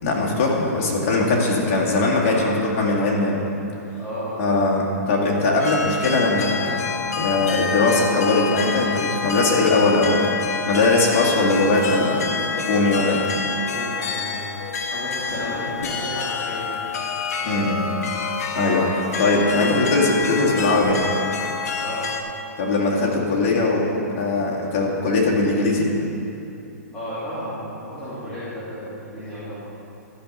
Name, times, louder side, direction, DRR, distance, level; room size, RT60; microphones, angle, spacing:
voice 1, 0.0-3.4 4.4-6.8 7.2-10.3 10.7-13.2 17.4-17.8 18.6-21.1 22.6-25.9, left 2 dB, 40° left, -2 dB, 2.0 m, -20 dB
voice 2, 4.0-4.6 12.9-13.2 13.6-14.4 14.9-16.8 17.6-17.7 21.8-22.1 26.9-29.6, equal, 15° left, -14 dB, 2.6 m, -33 dB
sound 1, 5.6-22.2, left 5 dB, 65° left, 0.9 m, -27 dB
13.0 x 5.5 x 5.4 m, 2.9 s
hypercardioid pair, 145°, 9 cm